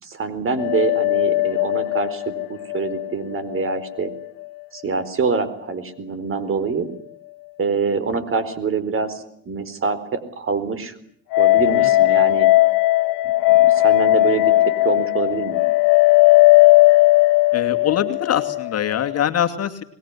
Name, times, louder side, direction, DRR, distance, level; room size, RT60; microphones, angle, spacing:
voice 1, 0.0-4.1 4.7-6.9 7.6-11.0 11.4-12.5 13.6-15.6, right 5 dB, 35° right, 14 dB, 4.2 m, -25 dB
sound 1, 0.6-4.1 11.3-19.3, left 18 dB, 80° left, 1.1 m, -17 dB
voice 2, 17.5-19.8, left 10 dB, 45° left, 7 dB, 2.5 m, -23 dB
25.0 x 21.0 x 9.8 m, 0.64 s
supercardioid pair, 100°, 35 cm